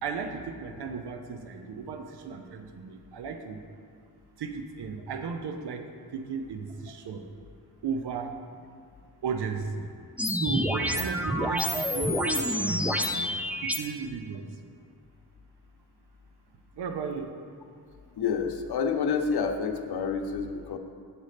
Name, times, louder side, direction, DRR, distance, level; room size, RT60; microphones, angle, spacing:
voice 1, 0.0-3.6 4.4-5.8 6.1-7.2 7.8-8.3 9.2-9.9 10.3-14.5 16.8-17.3, right 5 dB, 85° right, 6 dB, 0.7 m, -35 dB
sound 1, 10.2-13.8, equal, 5° right, 0.4 m, -28 dB
voice 2, 18.2-20.8, left 5 dB, 75° left, 5 dB, 0.7 m, -28 dB
7.9 x 4.1 x 6.5 m, 2.2 s
wide cardioid pair, 105°, 39 cm